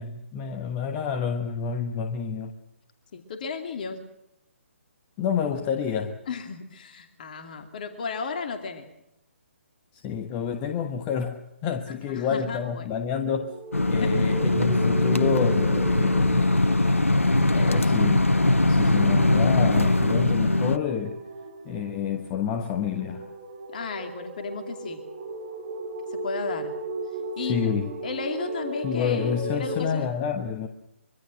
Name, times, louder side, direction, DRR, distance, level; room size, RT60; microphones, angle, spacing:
voice 1, 0.0-2.5 5.2-6.2 10.0-13.6 13.9-16.8 17.4-18.2 18.5-21.2 21.6-23.3 27.5-27.9 28.8-30.7, left 7 dB, 20° left, 1.2 m, -29 dB
voice 2, 3.1-4.0 6.3-8.9 12.1-12.9 14.0-14.2 17.4-17.9 23.7-25.0 26.1-26.7 27.4-27.8 28.0-30.1, left 5 dB, 40° left, 2.5 m, -34 dB
sound 1, 13.1-29.8, right 2 dB, 35° right, 5.3 m, -36 dB
sound 2, 13.7-20.8, left 2 dB, 75° left, 1.4 m, -21 dB
25.0 x 23.5 x 6.3 m
figure-of-eight pair, 140°, 7 cm